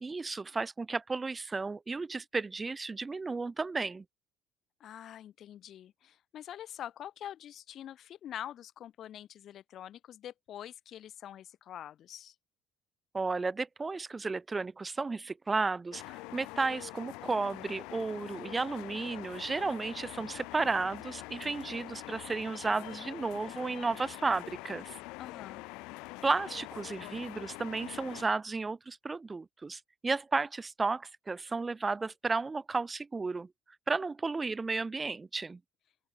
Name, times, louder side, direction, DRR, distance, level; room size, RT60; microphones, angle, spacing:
voice 1, 0.0-4.0 13.1-25.0 26.2-33.5 33.9-35.6, right 3 dB, 20° right, 0.7 m, -33 dB
voice 2, 4.8-12.3 25.2-25.7, left 11 dB, 50° left, 0.8 m, -45 dB
sound 1, 15.9-28.3, left 24 dB, 85° left, 0.3 m, -45 dB
open air
cardioid pair, 130°, 0 cm